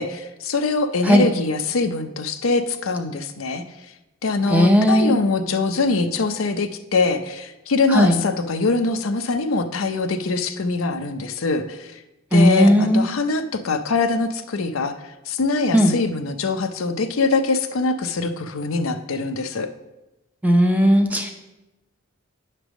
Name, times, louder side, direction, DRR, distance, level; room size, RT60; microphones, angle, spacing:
voice 1, 0.0-3.6 4.2-12.0 12.3-19.7, left 3 dB, 80° left, 8 dB, 0.6 m, -23 dB
voice 2, 4.5-5.1 7.9-8.2 12.3-13.1 15.7-15.9 20.4-21.3, equal, 5° right, 4 dB, 0.6 m, -16 dB
9.9 x 3.3 x 6.2 m, 0.99 s
head